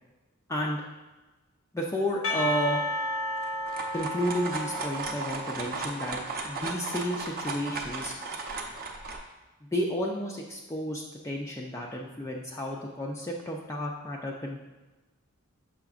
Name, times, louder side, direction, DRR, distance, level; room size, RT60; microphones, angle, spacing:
voice 1, 0.5-0.8 1.7-2.8 3.9-8.1 9.6-14.6, equal, 15° left, -2 dB, 0.4 m, -32 dB
Percussion, 2.2-6.1, equal, 70° left, 0.7 m, -33 dB
sound 1, 3.4-9.2, right 3 dB, 45° right, 0.7 m, -35 dB
6.9 x 5.7 x 2.4 m, 1.2 s
head